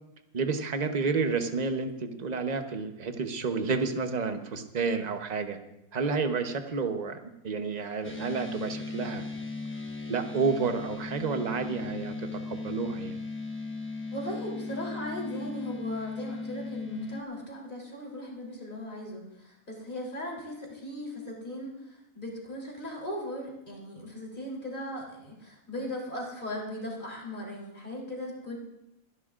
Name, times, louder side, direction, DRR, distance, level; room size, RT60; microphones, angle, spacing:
voice 1, 0.3-5.6 5.9-7.2 7.4-9.3 10.0-13.2, right 4 dB, 35° right, 6 dB, 0.9 m, -30 dB
sound 1, 8.0-17.2, left 3 dB, 10° left, 0.9 m, -37 dB
voice 2, 14.1-28.6, left 1 dB, 30° left, -3 dB, 3.6 m, -38 dB
27.5 x 11.0 x 2.5 m, 0.88 s
omnidirectional pair, 1.7 m